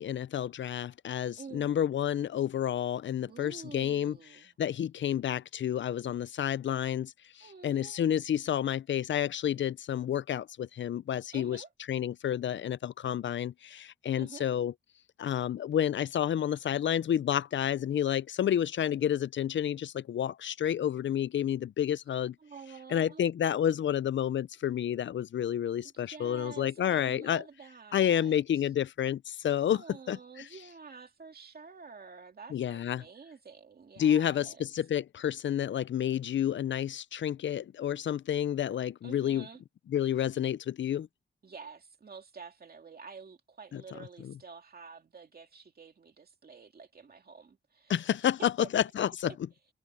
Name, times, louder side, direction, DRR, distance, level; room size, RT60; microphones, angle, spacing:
voice 1, 0.0-4.2 4.6-7.1 7.4-14.7 15.2-22.4 22.9-27.4 27.9-29.8 30.1-30.2 32.5-33.0 34.0-39.5 39.9-41.1 43.7-43.8 44.2-44.3 47.9-49.3, left 10 dB, 85° left, 0.4 m, -30 dB
voice 2, 1.4-1.8 3.2-4.5 7.4-8.0 11.3-11.7 14.2-14.5 22.4-23.3 25.8-28.7 29.7-34.7 39.0-39.6 41.4-48.0 48.4-48.7 49.1-49.4, right 5 dB, 55° right, 2.4 m, -49 dB
wide cardioid pair, 175°, 19 cm